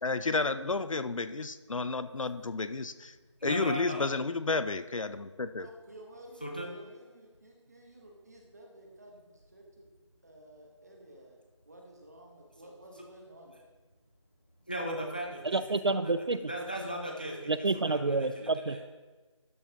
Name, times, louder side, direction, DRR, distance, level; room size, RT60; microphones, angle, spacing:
voice 1, 0.0-3.1 3.4-5.7, left 3 dB, 85° left, 12 dB, 0.6 m, -31 dB
voice 2, 3.4-4.0 6.4-6.7 14.7-16.0 16.5-18.8, right 1 dB, 15° left, 1 dB, 0.5 m, -37 dB
voice 3, 5.6-9.9 10.2-11.4 11.6-13.5, right 1 dB, 30° right, 0 dB, 1.2 m, -53 dB
voice 4, 15.5-16.5 17.5-18.8, right 3 dB, 55° right, 13 dB, 0.4 m, -29 dB
12.0 x 5.6 x 2.9 m, 1.2 s
figure-of-eight pair, 170°, 16 cm